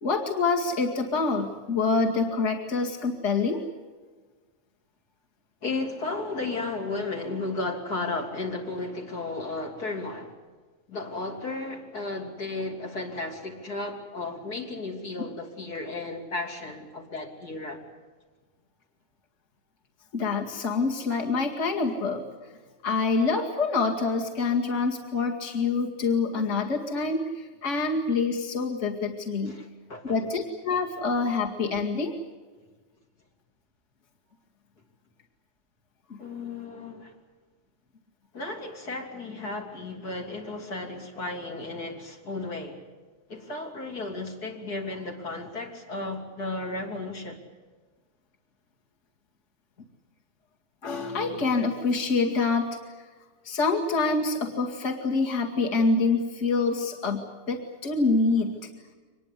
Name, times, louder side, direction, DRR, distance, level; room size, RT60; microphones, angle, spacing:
voice 1, 0.0-3.6 20.1-22.2 22.8-29.6 30.0-32.1 50.8-52.8 53.4-58.6, left 4 dB, 50° left, 0 dB, 2.6 m, -26 dB
voice 2, 5.6-10.4 10.9-17.8 29.5-30.2 36.2-37.2 38.3-42.8 43.3-47.4, left 2 dB, 75° left, 1 dB, 3.7 m, -34 dB
24.5 x 20.5 x 8.3 m, 1.4 s
omnidirectional pair, 1.6 m